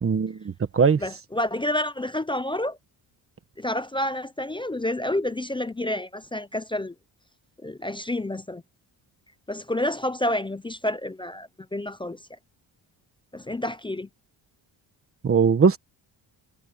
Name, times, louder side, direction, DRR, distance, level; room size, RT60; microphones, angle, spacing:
voice 1, 0.0-1.0 15.2-15.8, right 5 dB, 30° right, 1.3 m, -20 dB
voice 2, 1.0-2.8 3.6-6.9 7.6-8.6 9.5-12.2 13.3-14.1, left 1 dB, 15° left, 0.3 m, -29 dB
wide cardioid pair, 170°, 46 cm